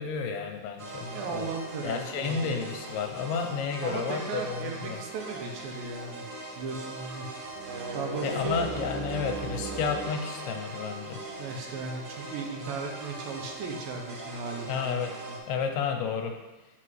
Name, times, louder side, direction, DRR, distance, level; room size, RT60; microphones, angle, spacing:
voice 1, 0.0-1.5 1.8-5.0 8.2-11.2 14.7-15.1 15.5-16.3, left 6 dB, 85° left, 4 dB, 2.5 m, -31 dB
sound 1, 0.8-15.4, right 2 dB, 40° right, 1.8 m, -41 dB
voice 2, 1.1-2.6 3.8-6.3 6.6-7.3 7.9-8.7 11.4-15.4, right 4 dB, 80° right, 2 dB, 2.3 m, -36 dB
sound 2, 7.5-10.3, right 4 dB, 65° right, 2.2 m, -36 dB
7.7 x 5.9 x 3.1 m, 1.1 s
omnidirectional pair, 4.6 m